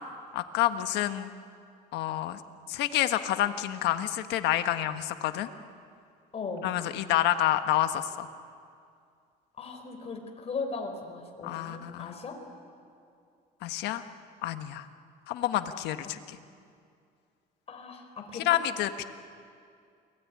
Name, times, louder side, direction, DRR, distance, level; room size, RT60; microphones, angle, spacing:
voice 1, 0.3-1.3 1.9-2.4 2.7-5.5 6.6-8.3 11.4-12.1 13.6-14.0 14.4-14.9 15.3-16.4 18.4-19.0, left 13 dB, 85° left, 9 dB, 1.4 m, -28 dB
voice 2, 6.3-6.7 9.6-12.4 17.7-18.6, left 4 dB, 40° left, 3 dB, 4.9 m, -38 dB
29.0 x 21.0 x 9.6 m, 2.3 s
cardioid pair, 110°, 17 cm